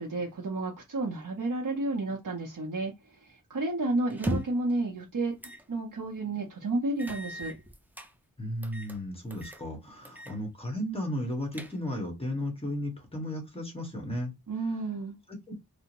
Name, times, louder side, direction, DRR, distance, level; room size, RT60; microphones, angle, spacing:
voice 1, 0.0-2.9 3.2-5.3 5.7-7.5 14.5-15.2, right 2 dB, 60° right, 0.7 m, -31 dB
sound 1, 4.1-4.7 5.4-5.6 6.0-6.1 7.0-8.1 8.6-9.0 9.3-9.6 10.1-10.4 10.7-10.8 11.3-12.1, right 1 dB, 5° right, 0.5 m, -37 dB
voice 2, 8.4-14.3 15.3-15.4, left 1 dB, 15° left, 1.4 m, -34 dB
3.4 x 2.1 x 2.9 m
wide cardioid pair, 45°, 36 cm